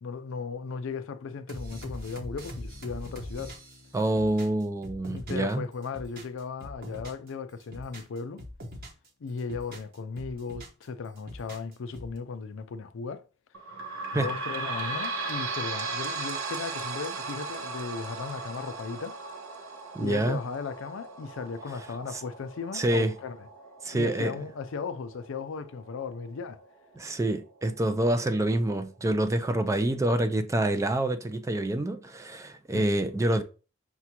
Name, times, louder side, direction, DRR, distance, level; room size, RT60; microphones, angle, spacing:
voice 1, 0.0-3.6 5.1-8.4 9.2-13.3 14.1-19.2 20.0-23.5 23.9-26.6 32.7-32.9, left 5 dB, 70° left, 0.4 m, -36 dB
sound 1, 1.5-5.5 5.8-7.3 7.6-9.1 9.4-10.8 11.2-12.2, equal, 50° right, 1.0 m, -42 dB
voice 2, 3.9-5.6 14.1-14.3 19.9-20.4 22.7-23.1 23.8-24.3 27.0-33.4, right 1 dB, 15° right, 0.3 m, -27 dB
sound 2, 13.5-26.7 27.3-27.4 27.6-27.7 28.5-28.6, right 3 dB, 75° right, 0.8 m, -37 dB
5.9 x 2.2 x 2.8 m
head